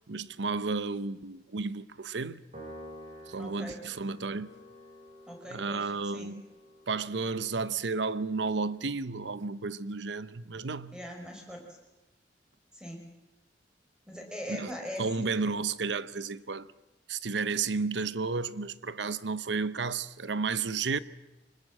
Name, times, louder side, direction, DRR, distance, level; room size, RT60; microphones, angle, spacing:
voice 1, 0.1-2.4 3.3-4.5 5.5-6.4 6.9-11.0 14.5-14.7 15.0-16.7 17.1-21.0, right 4 dB, 75° right, 0.8 m, -32 dB
Piano, 2.5-9.1, equal, 40° right, 7.1 m, -51 dB
voice 2, 3.4-3.8 5.3-6.3 10.9-11.6 12.7-13.0 14.1-15.3, equal, 5° right, 5.4 m, -41 dB
25.0 x 20.5 x 7.6 m
head